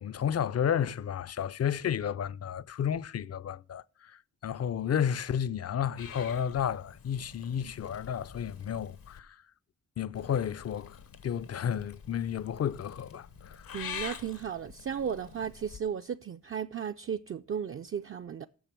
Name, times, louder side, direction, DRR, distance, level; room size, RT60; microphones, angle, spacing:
voice 1, 0.0-9.4 10.0-11.0 11.2-13.7, left 8 dB, 45° left, 0.4 m, -32 dB
Purr / Meow, 6.0-9.2 10.1-15.8, left 7 dB, 80° left, 1.1 m, -46 dB
voice 2, 13.7-18.5, right 7 dB, 40° right, 0.4 m, -35 dB
9.1 x 6.7 x 5.9 m
cardioid pair, 80°, 34 cm